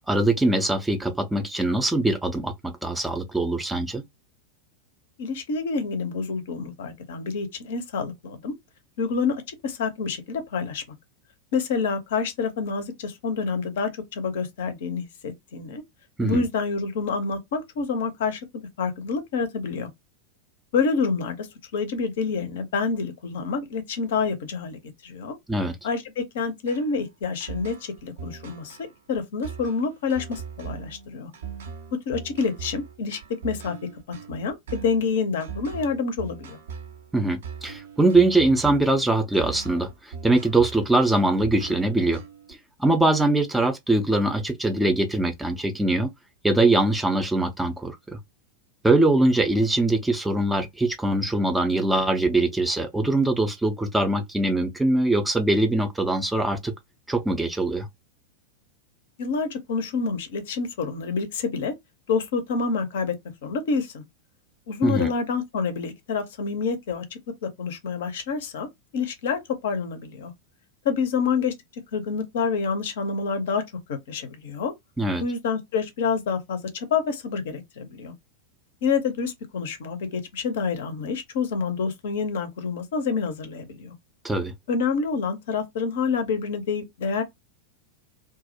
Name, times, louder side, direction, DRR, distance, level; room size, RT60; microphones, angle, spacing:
voice 1, 0.1-4.0 16.2-16.5 25.5-25.8 37.1-42.2 42.5-46.1 46.4-48.2 48.8-56.7 57.1-57.9 64.8-65.1 75.0-75.2 84.2-84.5, right 2 dB, 5° right, 0.4 m, -22 dB
voice 2, 5.2-8.5 9.0-10.8 11.5-15.8 16.2-18.4 18.8-19.9 20.7-21.5 21.7-25.4 25.8-28.8 29.1-31.3 32.1-33.7 34.1-36.6 59.2-61.7 62.1-63.1 63.4-64.0 64.7-67.0 67.4-68.7 68.9-70.3 70.8-71.5 71.9-73.6 73.9-74.7 75.2-78.1 78.8-83.9 84.7-87.2, left 5 dB, 55° left, 0.5 m, -27 dB
sound 1, 26.7-42.5, right 7 dB, 60° right, 0.5 m, -40 dB
2.3 x 2.0 x 2.7 m
figure-of-eight pair, 90°, 0 cm